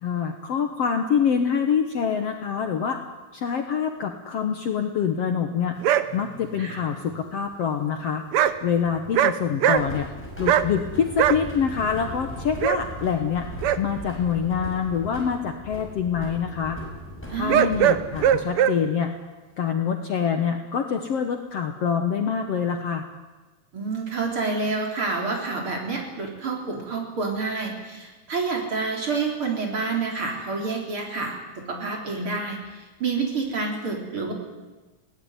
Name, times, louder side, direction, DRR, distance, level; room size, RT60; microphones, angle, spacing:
voice 1, 0.0-3.0 3.3-5.7 6.1-8.2 8.6-10.1 10.4-13.5 13.8-16.8 17.4-19.1 19.6-23.1, left 7 dB, 60° left, 5 dB, 1.9 m, -25 dB
sound 1, 5.8-6.0 8.3-8.5 8.9-9.3 9.6-10.0 10.5-10.7 11.2-11.4 12.6-12.8 13.6-13.8 17.5-18.7, right 10 dB, 90° right, 1.2 m, -19 dB
sound 2, 9.7-18.4, left 1 dB, 5° left, 6.2 m, -38 dB
voice 2, 17.3-17.7 23.7-31.4 31.7-34.3, right 4 dB, 40° right, 1 dB, 4.4 m, -28 dB
20.5 x 18.0 x 9.6 m, 1.2 s
omnidirectional pair, 3.8 m